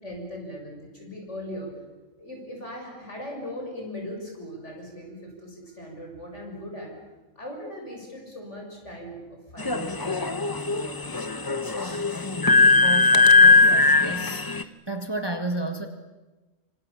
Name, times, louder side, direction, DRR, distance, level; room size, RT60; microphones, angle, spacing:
voice 1, 0.0-1.8 2.2-7.0 7.4-11.4 11.7-12.1, equal, 60° left, 1 dB, 7.4 m, -39 dB
sound 1, 9.6-14.6, left 3 dB, 20° left, 0.8 m, -19 dB
voice 2, 12.8-15.9, right 1 dB, 20° right, 6 dB, 1.8 m, -32 dB
26.5 x 26.0 x 7.2 m, 1.1 s
omnidirectional pair, 1.4 m